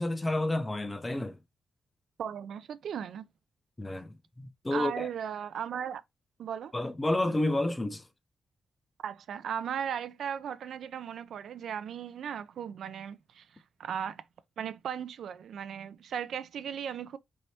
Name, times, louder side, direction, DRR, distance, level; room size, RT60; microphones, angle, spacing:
voice 1, 0.0-1.4 3.8-5.1 6.7-8.0, left 1 dB, 15° left, 0.6 m, -30 dB
voice 2, 2.2-3.3 4.7-6.0 6.4-6.7 9.0-13.5 13.8-14.2 14.6-17.2, right 8 dB, 80° right, 0.4 m, -37 dB
4.1 x 3.3 x 2.8 m
wide cardioid pair, 125°, 0 cm